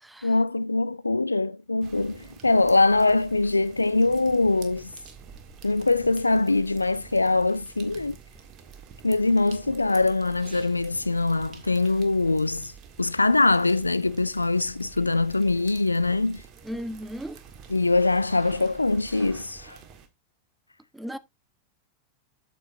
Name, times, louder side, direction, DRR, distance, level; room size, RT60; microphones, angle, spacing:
voice 1, 0.2-4.9 5.6-8.2 9.0-12.7 13.0-16.4 17.7-19.8, left 3 dB, 80° left, 0.4 m, -23 dB
sound 1, 1.8-20.1, right 6 dB, 35° right, 1.7 m, -48 dB
voice 2, 16.6-17.4 20.9-21.2, equal, 5° right, 0.8 m, -35 dB
8.4 x 7.0 x 3.1 m
figure-of-eight pair, 90°, 0 cm